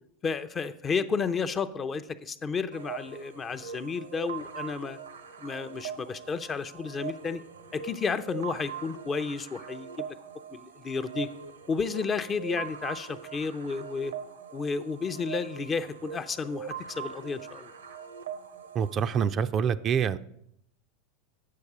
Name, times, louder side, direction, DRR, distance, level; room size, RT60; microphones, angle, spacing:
voice 1, 0.2-5.0 5.4-7.4 7.7-10.2 10.5-11.3 11.7-14.1 14.5-17.7, left 5 dB, 25° left, 12 dB, 0.5 m, -32 dB
sound 1, 2.7-19.3, right 8 dB, 85° right, 0.7 m, -42 dB
voice 2, 18.7-20.2, right 7 dB, 35° right, 12 dB, 0.3 m, -26 dB
8.5 x 6.5 x 4.7 m, 0.72 s
hypercardioid pair, 95°, 0 cm